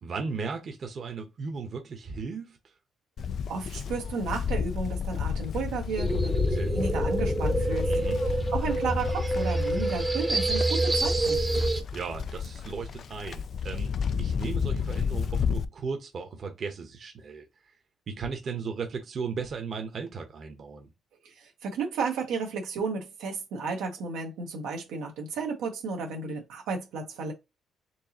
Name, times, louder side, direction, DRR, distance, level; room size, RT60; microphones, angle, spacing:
voice 1, 0.0-2.6 6.5-6.7 7.8-8.2 11.9-13.9 14.2-17.5 18.1-20.9, right 5 dB, 50° right, 1.0 m, -36 dB
Livestock farm animals working animals, 3.2-15.6, left 6 dB, 55° left, 0.3 m, -31 dB
voice 2, 3.5-7.9 8.5-11.4 21.2-27.3, right 4 dB, 90° right, 1.2 m, -33 dB
sound 1, 6.0-11.8, right 2 dB, 20° right, 0.8 m, -27 dB
4.5 x 2.8 x 2.9 m
cardioid pair, 90°, 0 cm